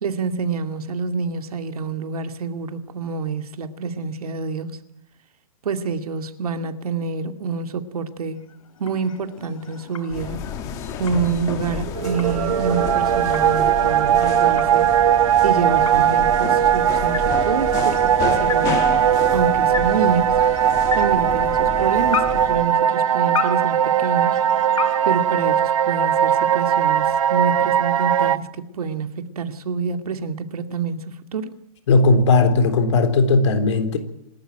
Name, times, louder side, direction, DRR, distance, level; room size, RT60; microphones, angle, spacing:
voice 1, 0.0-4.8 5.6-8.4 8.8-10.4 11.0-14.9 15.4-18.7 19.3-20.4 20.9-24.4 25.0-31.6, right 5 dB, 90° right, 2.3 m, -27 dB
sound 1, 8.3-26.1, left 7 dB, 70° left, 3.2 m, -35 dB
sound 2, 10.1-22.7, left 7 dB, 20° left, 1.4 m, -31 dB
sound 3, 11.9-28.4, right 10 dB, 65° right, 1.1 m, -19 dB
voice 2, 31.9-34.0, left 3 dB, 50° left, 3.7 m, -17 dB
27.0 x 13.0 x 9.0 m
hypercardioid pair, 175°, 19 cm